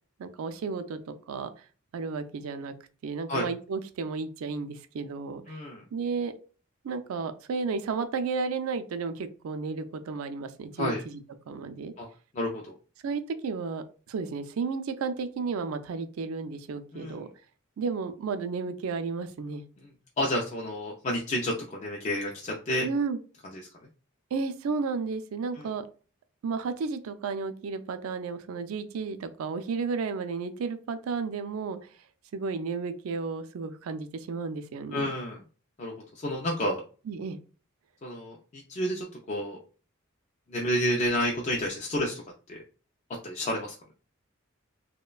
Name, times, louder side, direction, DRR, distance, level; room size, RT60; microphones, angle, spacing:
voice 1, 0.2-1.5 1.9-2.7 3.0-5.6 5.9-6.3 6.8-11.2 11.5-11.9 13.0-17.3 17.8-19.6 22.8-23.2 24.3-25.9 26.4-31.9 32.3-35.1 37.1-37.4, right 4 dB, 90° right, 10 dB, 0.4 m, -33 dB
voice 2, 5.5-5.8 10.8-11.0 12.0-12.1 12.3-12.8 16.9-17.2 20.2-22.9 23.5-23.6 25.6-25.7 34.9-35.4 35.8-36.8 38.0-39.6 40.5-42.2 42.5-42.6 43.2-43.8, equal, 35° left, -1 dB, 0.3 m, -30 dB
3.0 x 2.1 x 2.3 m, 0.37 s
head